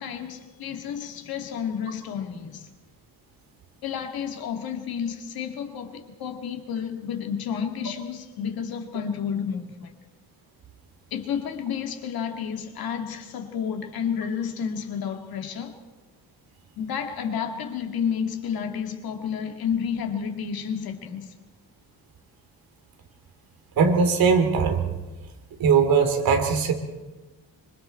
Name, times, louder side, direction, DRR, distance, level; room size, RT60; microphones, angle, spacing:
voice 1, 0.0-2.7 3.8-9.9 11.1-15.8 16.8-21.3, left 7 dB, 70° left, 2.1 m, -31 dB
voice 2, 23.8-24.8 25.6-26.7, right 5 dB, 65° right, 3.1 m, -20 dB
25.5 x 25.0 x 4.5 m
cardioid pair, 170°, 38 cm